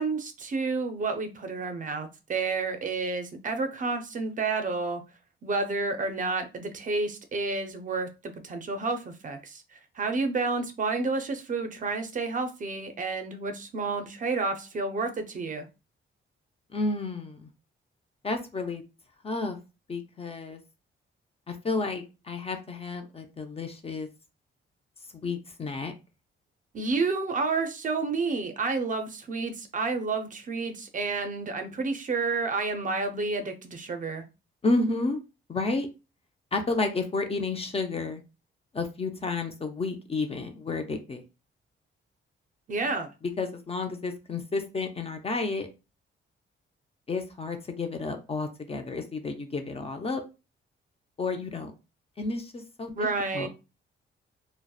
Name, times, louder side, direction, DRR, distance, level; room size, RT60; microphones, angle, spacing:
voice 1, 0.0-5.0 5.4-8.1 8.4-9.6 10.0-15.7 26.7-34.2 42.7-43.1 53.0-53.5, right 3 dB, 40° right, 0.4 m, -30 dB
voice 2, 16.7-17.5 18.2-18.8 19.2-19.6 19.9-20.6 21.5-24.1 25.1-25.9 34.6-35.2 35.5-35.9 36.5-38.2 38.7-41.2 43.2-45.7 47.1-50.2 51.2-51.7 52.2-53.1 53.3-53.5, left 3 dB, 30° left, 0.4 m, -31 dB
2.7 x 2.0 x 2.3 m
cardioid pair, 100°, 21 cm